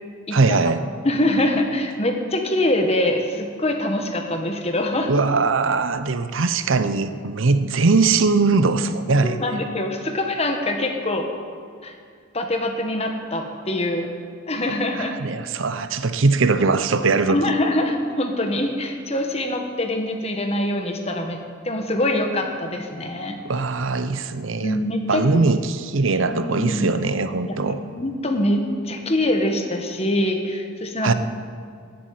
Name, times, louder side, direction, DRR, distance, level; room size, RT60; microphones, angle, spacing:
voice 1, 0.3-0.8 5.1-9.4 15.0-17.5 23.4-24.8 25.1-27.8 31.0-31.1, right 3 dB, 75° right, 12 dB, 0.7 m, -21 dB
voice 2, 1.0-5.1 9.2-11.3 11.8-11.9 12.3-14.1 14.5-15.2 17.3-23.4 24.6-25.2 26.3-26.9 27.5-31.1, left 1 dB, 30° left, 4 dB, 1.5 m, -24 dB
14.0 x 8.6 x 9.2 m, 2.2 s
head